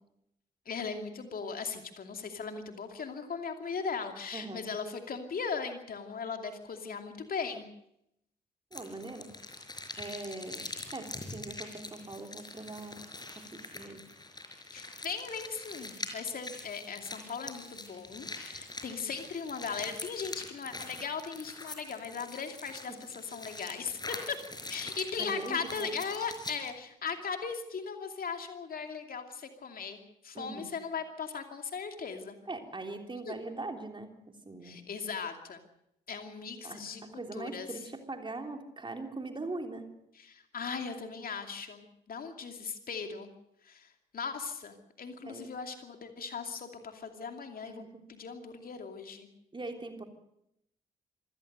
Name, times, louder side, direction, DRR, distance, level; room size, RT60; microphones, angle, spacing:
voice 1, 0.7-7.7 14.7-24.4 24.7-32.4 33.3-33.4 34.6-35.6 36.1-37.0 37.3-37.7 40.1-41.8 42.1-43.3 43.6-43.9 44.1-47.8 48.1-49.3, left 5 dB, 45° left, 5 dB, 2.6 m, -38 dB
voice 2, 4.3-4.6 8.7-9.3 10.0-10.6 10.9-13.0 13.3-14.0 22.9-23.0 25.2-25.9 30.3-30.7 32.5-34.8 36.6-39.9 45.2-45.5 47.6-48.0 49.5-50.0, right 2 dB, 25° right, 4 dB, 3.4 m, -41 dB
sound 1, 8.7-26.7, left 2 dB, 20° left, 4.6 m, -44 dB
27.0 x 16.5 x 6.6 m, 0.79 s
figure-of-eight pair, 40°, 21 cm